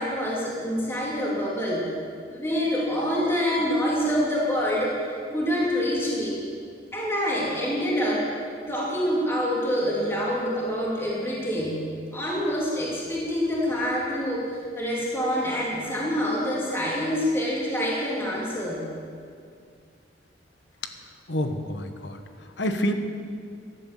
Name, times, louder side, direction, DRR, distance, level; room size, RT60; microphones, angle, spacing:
voice 1, 0.0-1.9 2.3-4.9 5.3-6.4 6.9-8.3 8.7-11.9 12.1-18.9, equal, 15° left, -5 dB, 2.7 m, -26 dB
voice 2, 21.3-22.9, equal, 75° left, 7 dB, 1.1 m, -28 dB
14.0 x 11.5 x 7.5 m, 2.3 s
head